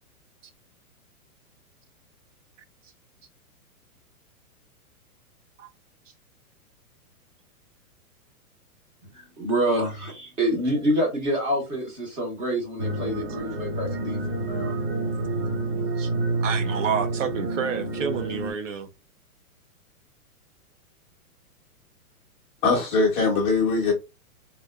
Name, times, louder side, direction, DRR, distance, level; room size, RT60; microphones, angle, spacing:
voice 1, 9.4-14.7, right 1 dB, 15° right, 0.8 m, -27 dB
sound 1, 12.8-18.5, right 2 dB, 35° right, 1.3 m, -28 dB
voice 2, 16.4-18.9, right 6 dB, 55° right, 0.6 m, -29 dB
voice 3, 22.6-23.9, left 4 dB, 15° left, 0.6 m, -21 dB
3.5 x 2.7 x 2.3 m
hypercardioid pair, 155°, 45 cm